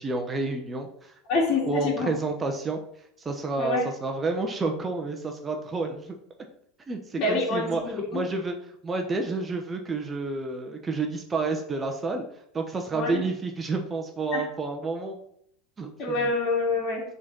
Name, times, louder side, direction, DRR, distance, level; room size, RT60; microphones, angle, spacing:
voice 1, 0.0-1.1 1.7-2.8 3.2-6.2 6.9-7.8 8.1-8.5 8.8-12.2 12.5-15.2 15.8-16.1, right 3 dB, 25° right, 3 dB, 1.0 m, -30 dB
voice 2, 1.3-2.1 3.6-3.8 7.2-8.2 12.9-13.2 14.3-14.5 16.0-17.0, left 3 dB, 45° left, -4 dB, 2.4 m, -26 dB
6.0 x 4.0 x 6.0 m, 0.71 s
hypercardioid pair, 85°, 0 cm